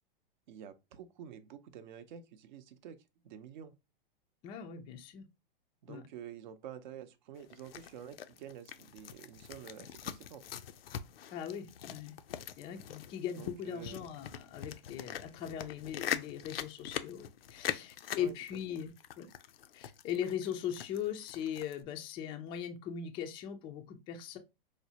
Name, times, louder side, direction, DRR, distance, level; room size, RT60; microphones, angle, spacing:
voice 1, 0.5-3.0 3.2-3.7 5.8-10.4 13.4-14.1 18.2-18.3, right 9 dB, 55° right, 0.6 m, -49 dB
voice 2, 4.4-5.3 5.9-6.0 11.3-12.2 12.6-19.3 19.7-24.4, left 9 dB, 20° left, 0.3 m, -40 dB
sound 1, 7.4-21.8, left 10 dB, 80° left, 0.5 m, -43 dB
4.8 x 2.1 x 2.7 m
hypercardioid pair, 130°, 29 cm